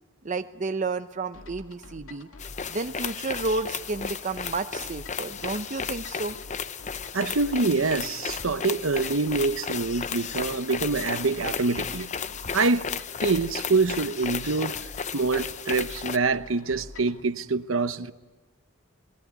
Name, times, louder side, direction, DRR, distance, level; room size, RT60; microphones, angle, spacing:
voice 1, 0.2-2.3 2.7-6.3, right 3 dB, 40° right, 0.7 m, -31 dB
sound 1, 1.3-17.2, left 2 dB, 85° left, 2.0 m, -47 dB
sound 2, 2.4-16.2, left 6 dB, 35° left, 0.7 m, -34 dB
voice 2, 7.1-12.1 12.5-12.9 13.2-14.8 15.1-18.1, right 3 dB, 80° right, 1.0 m, -25 dB
23.5 x 19.5 x 9.6 m
head